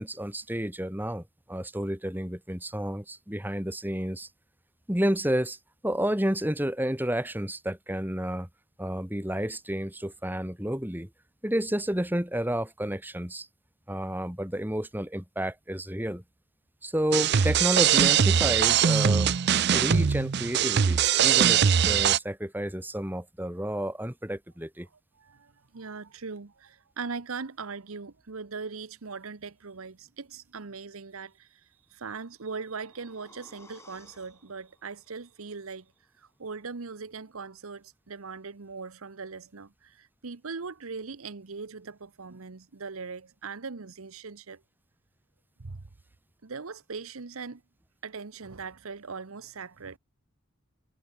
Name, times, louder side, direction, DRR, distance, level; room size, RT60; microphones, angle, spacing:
voice 1, 0.0-4.3 4.9-5.6 5.8-8.5 8.8-11.1 11.4-13.5 13.9-16.2 16.8-19.3 19.7-24.9, equal, 10° right, 2.1 m, -30 dB
sound 1, 17.1-22.2, right 8 dB, 50° right, 0.5 m, -22 dB
voice 2, 25.2-31.5 31.9-35.8 36.4-44.6 45.6-45.8 46.4-47.6 48.0-50.0, right 4 dB, 80° right, 1.0 m, -40 dB
sound 2, 32.2-36.2 36.6-36.7, left 2 dB, 15° left, 5.3 m, -58 dB
head